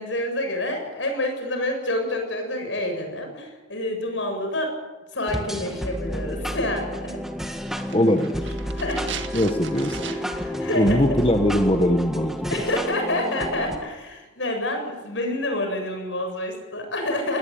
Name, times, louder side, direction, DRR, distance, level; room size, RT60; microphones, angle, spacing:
voice 1, 0.0-4.7 5.1-7.2 8.7-9.1 10.0-11.0 12.5-17.4, left 1 dB, 80° left, 4 dB, 7.7 m, -28 dB
sound 1, 5.3-13.8, equal, ahead, 1.7 m, -31 dB
sound 2, 7.6-10.5 10.8-10.9, right 7 dB, 80° right, 1.9 m, -38 dB
voice 2, 7.9-8.6 9.3-10.0 10.8-12.5, left 1 dB, 30° left, 5 dB, 1.2 m, -21 dB
21.0 x 19.0 x 8.7 m, 1.2 s
head